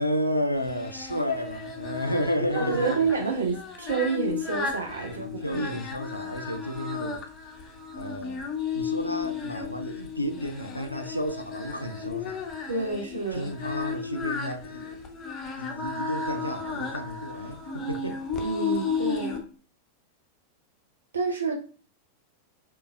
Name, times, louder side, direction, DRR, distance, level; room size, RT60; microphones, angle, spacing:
voice 1, 0.0-3.1 5.0-7.2 8.0-8.4 8.7-12.5 13.3-15.0 15.6-18.2, equal, 90° left, 0.3 m, -31 dB
Singing, 0.6-19.4, left 5 dB, 25° left, 0.6 m, -34 dB
voice 2, 2.6-5.6 12.7-13.5 18.4-19.4 21.1-21.5, right 4 dB, 75° right, 0.5 m, -29 dB
3.3 x 3.0 x 2.3 m
figure-of-eight pair, 90°, 0 cm